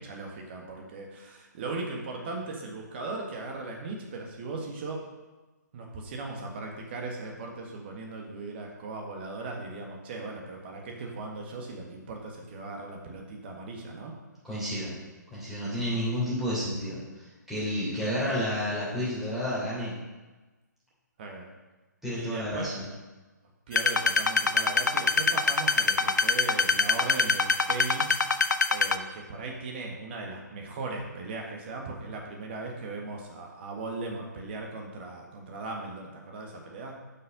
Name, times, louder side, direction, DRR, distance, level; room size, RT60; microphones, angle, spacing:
voice 1, 0.0-5.1 5.7-14.1 21.2-21.5 22.1-22.7 23.7-37.0, right 3 dB, 35° right, 0 dB, 1.6 m, -38 dB
voice 2, 14.4-14.9 15.3-19.9 22.0-22.9, equal, ahead, -9 dB, 3.1 m, -31 dB
sound 1, 23.7-29.0, left 4 dB, 75° left, 0.5 m, -24 dB
7.9 x 5.8 x 5.3 m, 1.2 s
figure-of-eight pair, 140°, 10 cm